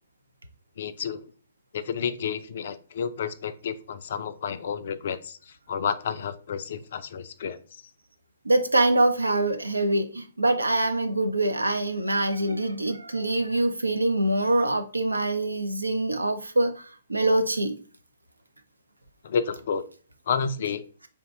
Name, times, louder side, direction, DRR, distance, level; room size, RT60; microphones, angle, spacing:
voice 1, 0.8-1.3 1.7-7.8 19.2-19.8 20.3-20.8, left 6 dB, 50° left, 0.3 m, -30 dB
voice 2, 8.4-17.7, right 2 dB, 80° right, 0.4 m, -24 dB
2.5 x 2.2 x 3.6 m
figure-of-eight pair, 120°, 0 cm